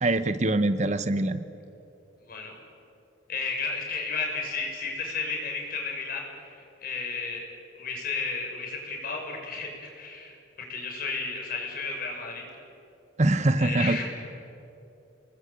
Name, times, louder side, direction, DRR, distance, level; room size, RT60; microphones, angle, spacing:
voice 1, 0.0-1.4 13.2-14.0, right 2 dB, 40° right, 12 dB, 0.9 m, -24 dB
voice 2, 3.3-7.4 7.7-12.4 13.6-14.0, left 4 dB, 55° left, 1 dB, 6.3 m, -33 dB
29.5 x 20.5 x 8.8 m, 2.7 s
head